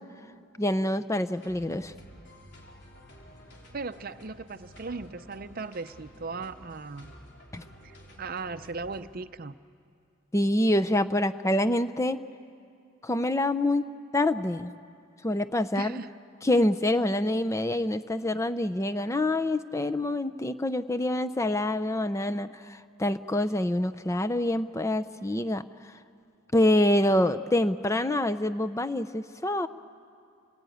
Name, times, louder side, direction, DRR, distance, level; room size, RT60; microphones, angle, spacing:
voice 1, 0.6-1.9 7.5-7.6 10.3-12.2 13.0-13.8 14.1-14.7 15.2-16.0 16.4-25.6 26.5-29.7, left 1 dB, 15° left, 11 dB, 0.5 m, -26 dB
sound 1, 1.3-9.0, equal, 55° left, 4.2 m, -51 dB
voice 2, 3.7-7.1 7.8-9.6 15.8-16.1, right 4 dB, 45° right, 12 dB, 0.6 m, -37 dB
29.0 x 19.5 x 9.2 m, 2.5 s
head